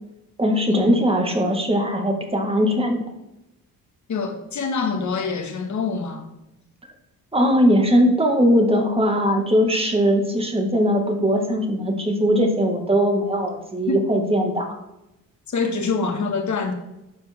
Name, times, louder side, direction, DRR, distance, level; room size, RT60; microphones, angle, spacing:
voice 1, 0.4-3.0 7.3-14.7, equal, 15° right, 2 dB, 2.0 m, -20 dB
voice 2, 4.1-6.2 13.9-14.1 15.5-16.7, left 4 dB, 55° left, 5 dB, 1.8 m, -25 dB
11.5 x 7.4 x 3.7 m, 0.92 s
cardioid pair, 110°, 35 cm